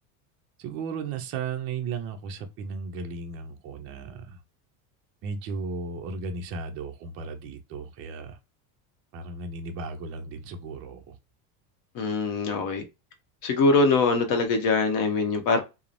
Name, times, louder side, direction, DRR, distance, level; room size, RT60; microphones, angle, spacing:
voice 1, 0.6-4.4 5.2-8.4 9.1-11.2, right 4 dB, 30° right, 0.4 m, -35 dB
voice 2, 11.9-12.8 13.4-15.6, left 3 dB, 45° left, 0.8 m, -23 dB
3.0 x 2.0 x 2.5 m
supercardioid pair, 140°, 47 cm